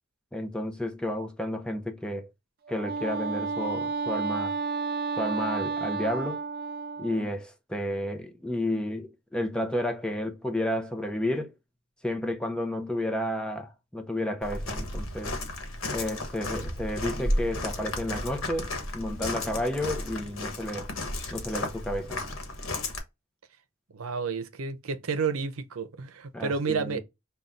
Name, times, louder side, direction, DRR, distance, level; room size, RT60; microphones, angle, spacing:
voice 1, 0.3-2.3 2.7-4.5 5.2-6.4 7.0-11.5 12.0-15.3 15.9-20.9 21.3-22.2 26.3-27.0, left 1 dB, 5° left, 0.6 m, -31 dB
Wind instrument woodwind instrument, 2.6-7.3, right 5 dB, 45° right, 0.5 m, -31 dB
Walk footsteps, 14.4-23.0, left 1 dB, 75° left, 1.3 m, -33 dB
voice 2, 23.9-27.0, right 5 dB, 90° right, 0.7 m, -30 dB
5.5 x 2.3 x 3.7 m
head